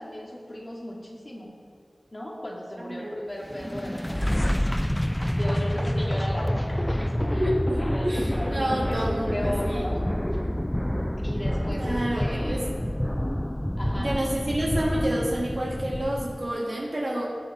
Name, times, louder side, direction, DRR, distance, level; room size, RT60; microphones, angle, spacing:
voice 1, 0.0-1.5 2.1-4.6 5.4-7.5 7.9-10.1 11.2-12.7 13.8-14.1, equal, 35° left, -3 dB, 2.5 m, -36 dB
voice 2, 2.8-3.1 7.4-9.9 11.8-12.6 14.0-17.2, right 1 dB, 50° right, -4 dB, 3.1 m, -29 dB
sound 1, 3.4-16.6, equal, 10° left, 0.3 m, -27 dB
19.5 x 6.6 x 4.3 m, 2.2 s
wide cardioid pair, 65°, 0 cm